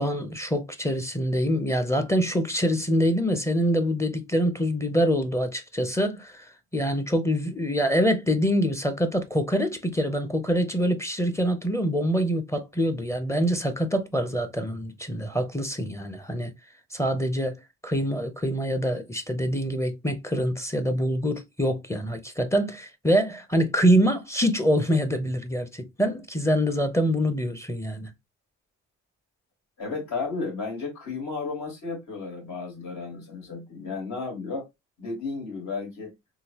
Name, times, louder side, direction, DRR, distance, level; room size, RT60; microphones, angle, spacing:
voice 1, 0.0-6.5 6.7-16.5 16.9-17.6 17.8-28.1, equal, 10° left, 0.6 m, -25 dB
voice 2, 29.8-34.7 35.0-36.1, left 4 dB, 65° left, 2.1 m, -33 dB
3.7 x 2.4 x 2.8 m
cardioid pair, 90°, 30 cm